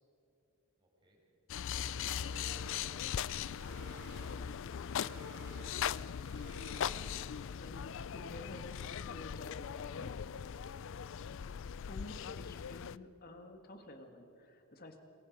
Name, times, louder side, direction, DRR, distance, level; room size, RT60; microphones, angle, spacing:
voice 1, 0.8-1.2 2.1-4.7 5.0-6.7, equal, 20° right, -1 dB, 5.5 m, -68 dB
sound 1, 1.5-13.0, left 8 dB, 60° left, 0.4 m, -40 dB
sound 2, 2.0-7.4, right 2 dB, 55° right, 3.6 m, -55 dB
voice 2, 7.1-10.3 11.9-15.0, left 1 dB, 45° left, 6 dB, 2.0 m, -51 dB
27.0 x 21.5 x 5.4 m, 2.9 s
head